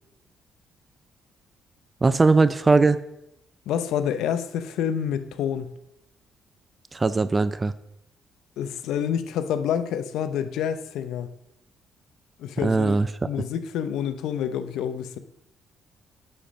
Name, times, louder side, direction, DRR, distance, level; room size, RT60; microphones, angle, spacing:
voice 1, 2.0-3.0 6.9-7.7 12.6-13.1, right 3 dB, 25° right, 0.4 m, -19 dB
voice 2, 3.7-5.8 8.6-11.3 12.4-13.0 13.2-15.2, left 9 dB, 85° left, 0.6 m, -28 dB
10.0 x 4.4 x 5.1 m
cardioid pair, 90°, 0 cm